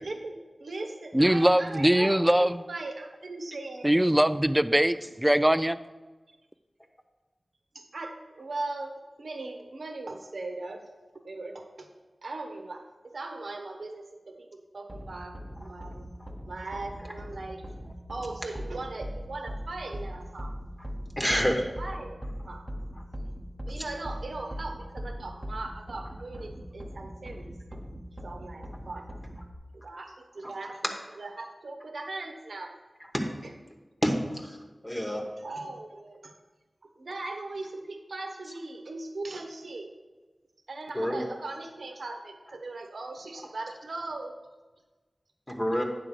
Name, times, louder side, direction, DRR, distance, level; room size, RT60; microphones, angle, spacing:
voice 1, 0.0-4.0 7.7-8.9 9.2-11.9 12.2-16.1 16.5-17.8 18.1-20.6 21.2-22.7 23.7-27.8 28.2-29.1 29.7-30.8 31.1-32.7 33.4-33.5 35.4-36.3 36.8-39.9 40.7-44.3, right 2 dB, 80° right, 4 dB, 0.9 m, -39 dB
voice 2, 1.1-2.6 3.8-5.8, right 1 dB, 15° right, 14 dB, 0.3 m, -22 dB
sound 1, 14.9-29.5, equal, 30° right, 0.8 m, -40 dB
voice 3, 21.2-21.6 33.1-33.3 34.0-34.6 34.8-35.3 40.9-41.2 45.5-45.8, equal, 15° left, 2 dB, 1.0 m, -27 dB
8.8 x 3.6 x 6.7 m, 1.2 s
wide cardioid pair, 50°, 0 cm